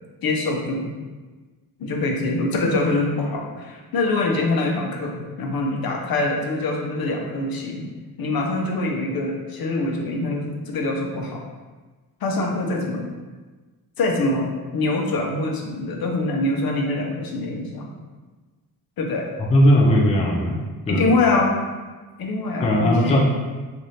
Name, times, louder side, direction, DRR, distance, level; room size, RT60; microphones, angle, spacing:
voice 1, 0.2-1.0 1.8-7.9 8.2-11.4 12.2-13.1 14.0-17.9 19.0-19.3 20.9-21.5 22.2-23.2, left 2 dB, 60° left, 1 dB, 0.7 m, -24 dB
voice 2, 19.5-21.1 22.6-23.2, equal, 15° left, -2 dB, 0.3 m, -18 dB
3.2 x 2.6 x 4.0 m, 1.3 s
wide cardioid pair, 155°, 41 cm